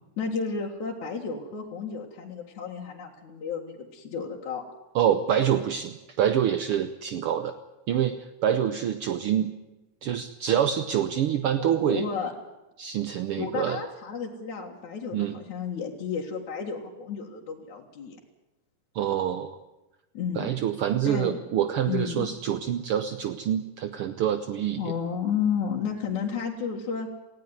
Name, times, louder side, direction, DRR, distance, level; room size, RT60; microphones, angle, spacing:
voice 1, 0.2-4.6 10.5-10.6 11.6-12.3 13.4-18.2 20.1-20.5 21.0-21.4 21.9-22.3 24.8-27.1, left 6 dB, 65° left, -2 dB, 3.1 m, -32 dB
voice 2, 4.9-7.6 7.9-9.5 10.0-12.0 12.8-13.8 15.1-15.4 18.9-19.6 20.3-24.8, right 10 dB, 75° right, 10 dB, 1.3 m, -26 dB
19.0 x 16.5 x 9.5 m, 1.0 s
omnidirectional pair, 3.6 m